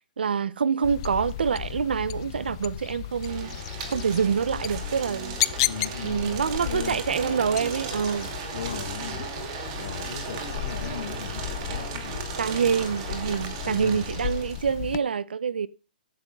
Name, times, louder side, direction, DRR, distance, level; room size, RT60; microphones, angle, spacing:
voice 1, 0.2-3.5 3.9-5.4 6.0-8.3 12.4-15.7, right 6 dB, 85° right, 0.6 m, -26 dB
sound 1, 0.8-15.0, left 14 dB, 35° left, 0.4 m, -34 dB
sound 2, 3.1-14.7, right 5 dB, 35° right, 2.4 m, -36 dB
voice 2, 5.7-7.0 8.5-9.3 9.7-12.2 13.6-14.1, left 7 dB, 65° left, 1.9 m, -37 dB
14.5 x 10.5 x 2.4 m
hypercardioid pair, 155°, 5 cm